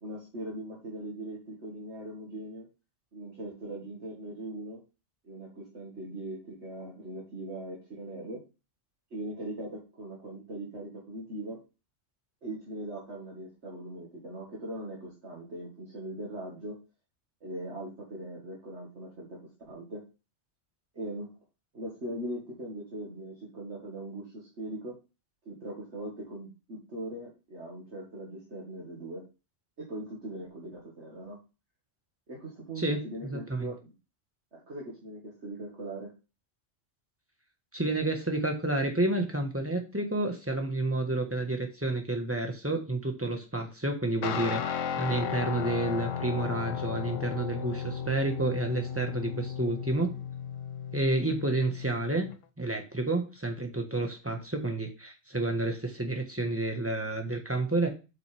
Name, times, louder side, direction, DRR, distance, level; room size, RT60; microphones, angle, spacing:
voice 1, 0.0-2.7 3.1-4.8 5.2-8.4 9.1-11.6 12.4-16.8 17.4-19.4 19.7-20.0 20.9-21.3 21.7-25.0 25.5-29.2 29.8-31.4 32.3-33.9 34.5-36.1, right 1 dB, 60° right, -4 dB, 2.2 m, -40 dB
voice 2, 32.8-33.7 37.7-50.1 50.9-52.3 52.6-57.9, right 2 dB, 10° right, 4 dB, 1.3 m, -30 dB
Guitar, 44.2-52.4, left 8 dB, 75° left, 1.1 m, -35 dB
7.5 x 5.9 x 3.4 m, 0.29 s
omnidirectional pair, 1.3 m